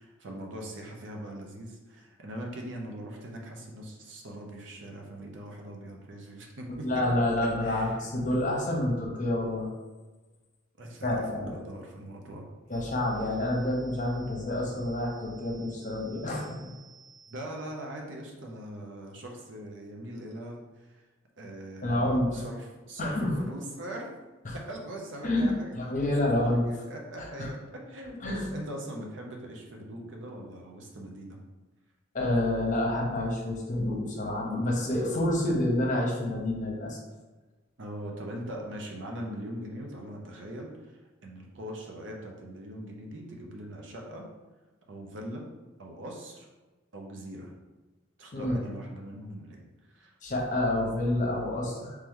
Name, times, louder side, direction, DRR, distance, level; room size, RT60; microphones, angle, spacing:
voice 1, 0.0-8.4 10.8-12.5 17.3-21.0 21.4-24.1 24.5-31.4 37.8-44.3 44.9-45.5 45.8-46.5 46.9-47.5 48.2-49.6 49.9-50.1, right 1 dB, 70° right, 0 dB, 0.7 m, -41 dB
voice 2, 6.8-9.7 11.0-11.6 12.7-17.3 21.8-22.4 23.0-23.3 24.4-24.6 25.2-26.7 27.4-27.5 28.2-28.5 32.1-37.0 48.3-48.6 50.2-51.9, left 1 dB, 40° left, -1 dB, 0.8 m, -28 dB
3.2 x 3.0 x 3.6 m, 1.2 s
head